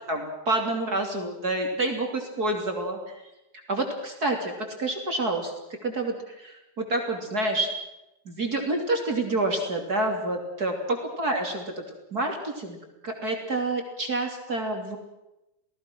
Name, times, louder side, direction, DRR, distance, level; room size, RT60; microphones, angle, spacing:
voice 1, 0.1-3.2 3.7-5.5 5.8-7.7 8.2-12.8 13.0-15.0, right 2 dB, 30° right, 2 dB, 3.2 m, -28 dB
29.5 x 18.5 x 6.1 m, 0.93 s
omnidirectional pair, 3.6 m